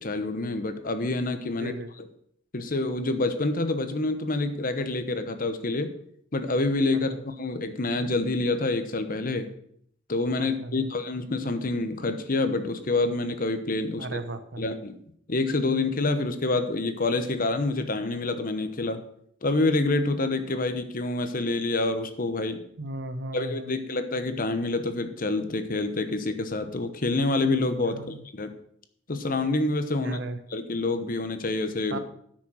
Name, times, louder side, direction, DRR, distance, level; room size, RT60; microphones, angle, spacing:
voice 1, 0.0-1.7 2.5-5.9 6.3-9.5 10.1-14.1 14.6-15.0 15.3-19.0 19.4-22.6 23.3-28.5 29.1-30.2 30.5-32.0, left 2 dB, 45° left, 9 dB, 1.0 m, -27 dB
voice 2, 1.5-1.9 6.9-7.2 10.4-10.9 13.9-14.6 22.8-23.8 27.9-28.2 30.0-30.4 31.9-32.0, right 2 dB, 60° right, 10 dB, 0.9 m, -36 dB
10.0 x 6.3 x 6.3 m, 0.67 s
head